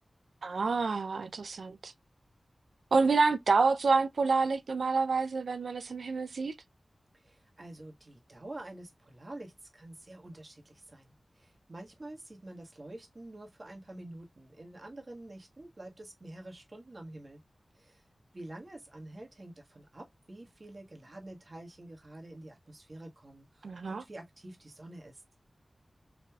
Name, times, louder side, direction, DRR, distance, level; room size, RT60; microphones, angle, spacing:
voice 1, 0.4-1.9 2.9-6.5 23.6-24.0, right 4 dB, 85° right, 0.4 m, -28 dB
voice 2, 7.1-17.4 17.8-18.0 18.3-25.2, right 1 dB, 40° right, 1.4 m, -48 dB
4.2 x 3.1 x 2.2 m
wide cardioid pair, 80°, 0 cm